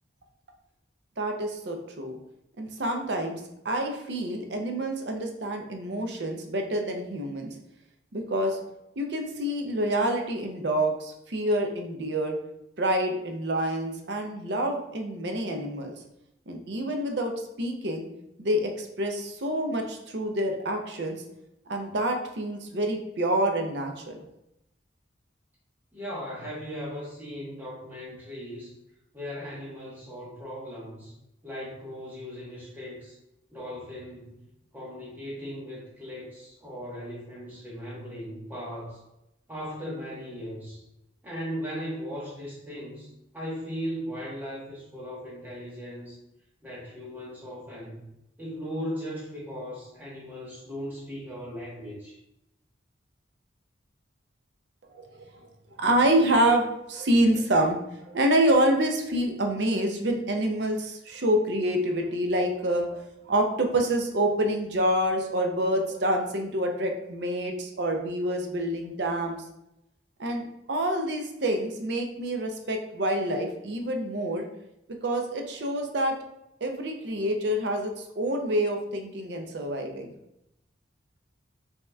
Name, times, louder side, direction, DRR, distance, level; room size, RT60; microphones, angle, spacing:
voice 1, 1.2-2.2 2.6-7.5 8.1-8.6 9.0-12.4 12.8-15.9 16.5-17.3 17.6-18.1 18.4-21.2 21.7-24.2 54.9-55.2 55.8-57.8 58.1-69.4 70.2-74.4 75.0-76.2 76.6-80.1, right 1 dB, 60° right, 3 dB, 0.6 m, -27 dB
voice 2, 25.9-28.7 29.1-31.1 31.4-33.2 33.5-34.4 34.7-39.0 39.5-40.8 41.2-46.2 46.6-48.1 48.4-52.2, equal, 10° right, -7 dB, 1.2 m, -38 dB
5.3 x 2.9 x 2.3 m, 0.84 s
head